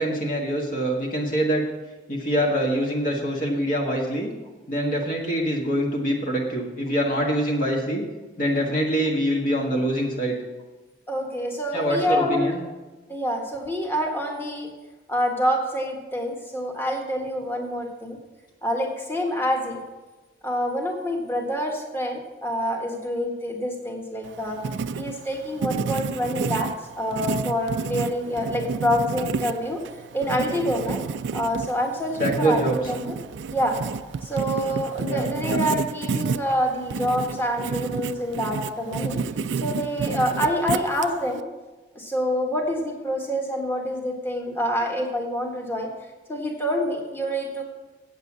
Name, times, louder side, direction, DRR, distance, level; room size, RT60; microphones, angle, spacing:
voice 1, 0.0-1.6 2.1-4.3 4.7-8.0 8.4-10.4 11.7-12.6 32.2-32.7 35.0-35.3, right 1 dB, 45° left, -2 dB, 1.6 m, -24 dB
voice 2, 11.1-12.6 13.1-14.7 15.1-18.2 18.6-19.8 20.4-24.6 24.9-29.8 30.1-31.0 31.3-33.2 33.5-33.8 34.2-39.2 39.6-41.4 41.9-45.9 46.3-47.6, equal, 10° left, 0 dB, 1.5 m, -26 dB
Writing, 24.2-41.4, right 5 dB, 85° right, 0.4 m, -30 dB
8.3 x 8.0 x 7.3 m, 1.2 s
head